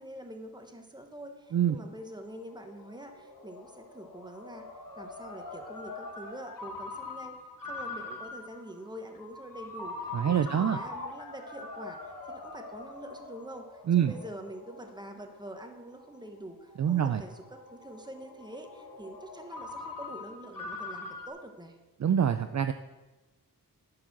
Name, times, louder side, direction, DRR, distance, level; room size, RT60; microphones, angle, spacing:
voice 1, 0.0-4.7 5.0-7.4 7.7-21.8, right 1 dB, 10° right, 4 dB, 1.1 m, -45 dB
Ringtone, 1.5-21.3, left 3 dB, 60° left, 1.4 m, -43 dB
voice 2, 10.1-10.8 13.9-14.1 16.8-17.2 22.0-22.7, right 9 dB, 50° right, 9 dB, 0.4 m, -25 dB
11.0 x 4.9 x 6.0 m, 1.1 s
wide cardioid pair, 105°, 37 cm